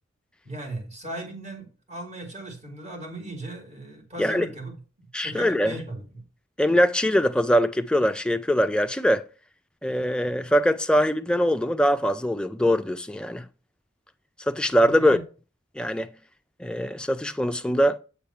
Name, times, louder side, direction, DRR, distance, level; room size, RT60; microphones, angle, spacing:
voice 1, 0.4-4.8 5.2-6.2 14.7-15.2, right 1 dB, 35° right, 1.8 m, -37 dB
voice 2, 5.1-5.7 6.6-9.2 9.8-13.5 14.5-15.2 15.8-16.1 16.6-18.0, equal, 5° left, 0.3 m, -22 dB
8.4 x 3.4 x 5.6 m
head